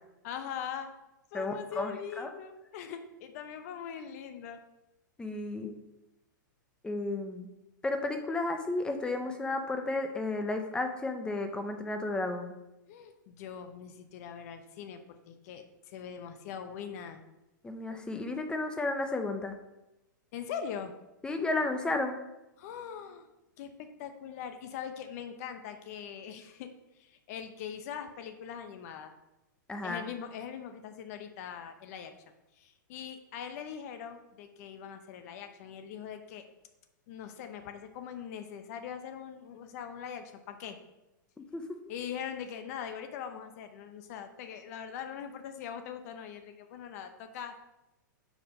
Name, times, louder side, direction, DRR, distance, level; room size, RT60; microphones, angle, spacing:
voice 1, 0.2-0.9 1.3-4.6 12.9-17.2 20.3-20.9 22.6-23.3 23.6-26.7 27.0-29.1 29.8-32.1 32.6-36.4 37.1-40.8 41.9-47.5, left 8 dB, 50° left, 8 dB, 0.8 m, -42 dB
voice 2, 1.3-2.3 5.2-5.8 6.8-7.5 7.8-12.5 17.6-19.5 21.2-22.2 29.7-30.0 41.4-41.6, left 2 dB, 10° left, 6 dB, 0.6 m, -33 dB
5.2 x 5.0 x 5.1 m, 0.95 s
hypercardioid pair, 135°, 11 cm